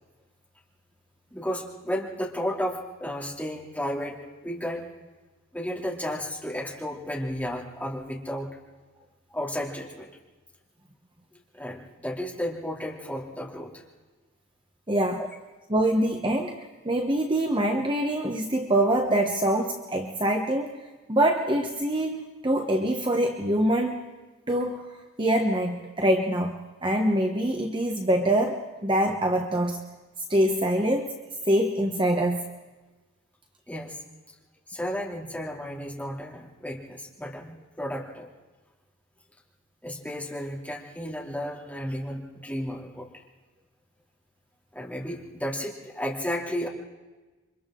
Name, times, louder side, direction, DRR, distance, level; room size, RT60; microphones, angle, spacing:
voice 1, 1.3-4.2 4.4-4.9 5.5-8.6 9.3-10.1 11.5-13.8 33.7-34.0 34.7-38.3 39.8-43.2 44.7-46.7, equal, 5° left, -3 dB, 2.9 m, -33 dB
voice 2, 14.9-15.2 15.7-24.1 24.5-24.9 25.2-29.8 30.3-31.2 31.5-32.5, right 1 dB, 25° right, 3 dB, 1.1 m, -25 dB
29.0 x 24.5 x 3.8 m, 1.2 s
head